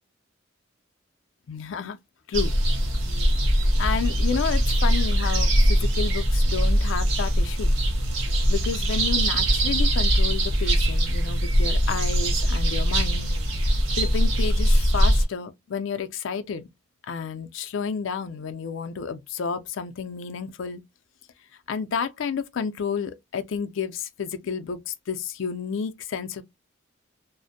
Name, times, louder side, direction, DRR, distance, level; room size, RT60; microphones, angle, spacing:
voice 1, 1.5-2.0 2.3-2.5 3.8-7.8 8.5-13.3 14.0-16.7 17.1-20.8 21.7-26.4, left 6 dB, 65° left, 0.4 m, -31 dB
sound 1, 2.3-15.2, equal, 70° right, 0.7 m, -22 dB
2.5 x 2.0 x 2.6 m
head